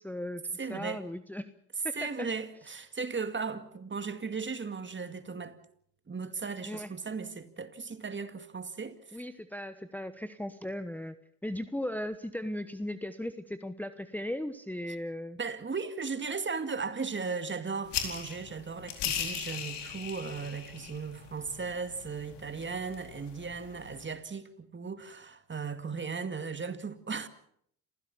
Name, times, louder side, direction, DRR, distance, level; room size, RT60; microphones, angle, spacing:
voice 1, 0.0-1.5 1.8-2.3 6.6-6.9 9.1-11.2 11.4-15.4, left 1 dB, 5° left, 1.1 m, -37 dB
voice 2, 0.6-1.0 1.9-5.6 6.1-9.2 15.4-27.3, right 5 dB, 25° right, 2.2 m, -37 dB
sound 1, 17.9-24.0, left 9 dB, 70° left, 4.5 m, -39 dB
27.5 x 16.0 x 7.2 m
supercardioid pair, 70°, 42 cm